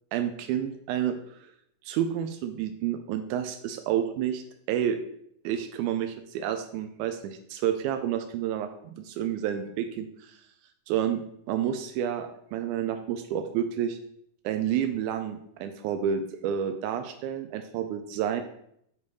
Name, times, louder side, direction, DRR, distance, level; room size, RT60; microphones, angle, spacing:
voice 1, 0.1-1.2 1.4-1.5 1.8-5.0 5.4-10.4 10.9-11.2 11.5-14.0 14.4-18.4, right 9 dB, 90° right, 7 dB, 2.0 m, -30 dB
7.0 x 3.2 x 5.4 m, 0.72 s
omnidirectional pair, 3.4 m